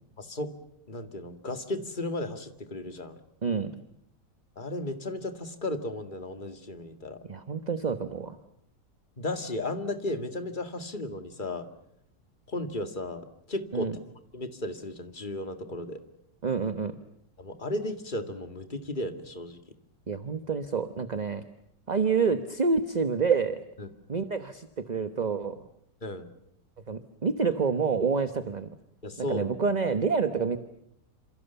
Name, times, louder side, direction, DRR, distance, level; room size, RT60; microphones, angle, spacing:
voice 1, 0.2-0.5 0.9-3.2 4.6-7.2 9.2-11.7 12.5-13.9 14.3-16.0 17.4-19.6 23.8-23.9 26.0-26.3 29.0-29.6, left 1 dB, 25° left, 8 dB, 2.3 m, -34 dB
voice 2, 7.3-8.4 13.7-14.0 16.4-16.9 20.1-21.4 21.9-23.6 24.1-25.6 26.9-28.7 29.3-30.6, right 5 dB, 30° right, 10 dB, 1.1 m, -28 dB
28.5 x 27.0 x 7.1 m, 0.73 s
omnidirectional pair, 1.9 m